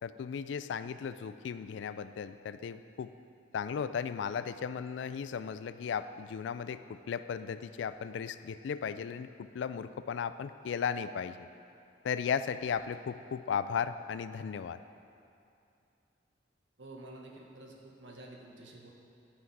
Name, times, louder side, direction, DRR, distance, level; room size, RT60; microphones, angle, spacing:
voice 1, 0.0-3.1 3.5-11.5 12.0-14.8, left 7 dB, 75° left, 13 dB, 0.3 m, -36 dB
voice 2, 16.8-18.9, right 2 dB, 80° right, -1 dB, 1.2 m, -49 dB
10.0 x 5.8 x 4.7 m, 2.6 s
head